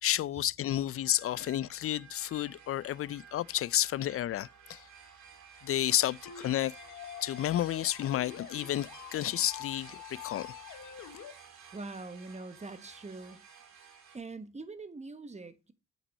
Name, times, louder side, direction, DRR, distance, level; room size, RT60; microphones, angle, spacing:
voice 1, 0.0-4.8 5.6-6.7 7.2-10.5, left 13 dB, 50° left, 0.4 m, -31 dB
sound 1, 0.9-14.2, right 7 dB, 65° right, 2.8 m, -53 dB
sound 2, 6.3-11.3, left 11 dB, 85° left, 1.3 m, -47 dB
voice 2, 11.7-13.4 14.1-15.7, right 3 dB, 20° right, 1.3 m, -43 dB
8.3 x 5.9 x 5.4 m
cardioid pair, 90°, 30 cm